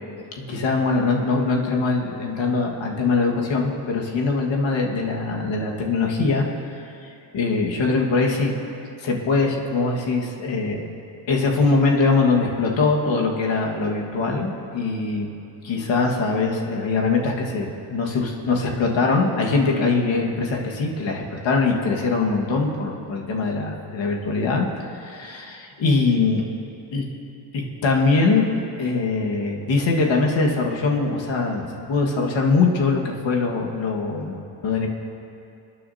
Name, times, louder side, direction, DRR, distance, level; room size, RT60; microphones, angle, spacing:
voice 1, 0.5-6.5 7.0-8.5 9.0-10.8 11.3-15.3 15.6-24.7 24.9-26.4 26.9-27.1 27.5-28.5 28.8-34.9, left 3 dB, 70° left, 0 dB, 1.7 m, -22 dB
27.5 x 9.6 x 2.8 m, 2.6 s
cardioid pair, 90°, 47 cm